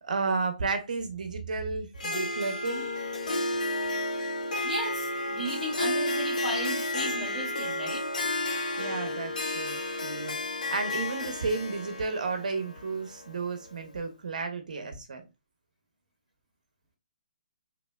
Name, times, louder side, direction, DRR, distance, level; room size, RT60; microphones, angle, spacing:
voice 1, 0.0-2.9 8.8-15.2, right 4 dB, 70° right, 0.7 m, -32 dB
Harp, 2.0-13.8, left 2 dB, 75° left, 1.0 m, -32 dB
voice 2, 4.6-8.1, right 1 dB, 5° left, 2.2 m, -35 dB
4.0 x 2.9 x 2.3 m
hypercardioid pair, 140°, 4 cm